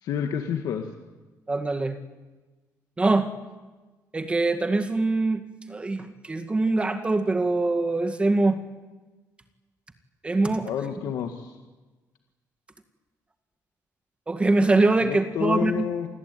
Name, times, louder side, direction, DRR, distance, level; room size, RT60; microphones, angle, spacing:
voice 1, 0.0-0.9 10.6-11.5 15.0-16.1, left 8 dB, 80° left, 4 dB, 2.1 m, -29 dB
voice 2, 1.5-2.0 3.0-3.3 4.1-5.4 5.7-8.6 10.2-10.7 14.3-15.9, right 2 dB, 15° right, 7 dB, 1.9 m, -23 dB
27.5 x 20.5 x 9.4 m, 1.2 s
cardioid pair, 145°, 7 cm